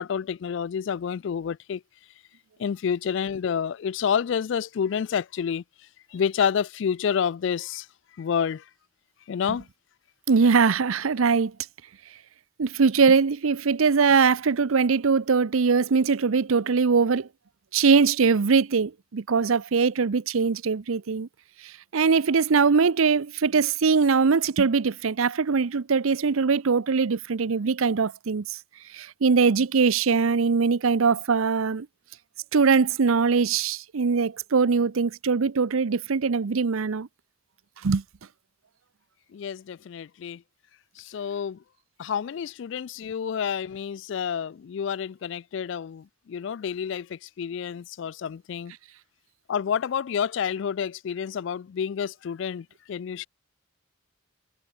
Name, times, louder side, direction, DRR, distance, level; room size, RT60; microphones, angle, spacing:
voice 1, 0.0-1.8 2.6-5.6 6.1-7.9 8.2-8.6 9.3-9.6 39.3-40.4 41.0-41.6 42.0-48.7 49.5-53.3, left 7 dB, 60° left, 0.3 m, -29 dB
voice 2, 10.3-11.5 12.6-17.3 17.7-21.3 21.6-28.6 28.9-31.9 32.5-37.1 37.8-38.0, right 5 dB, 75° right, 0.6 m, -22 dB
head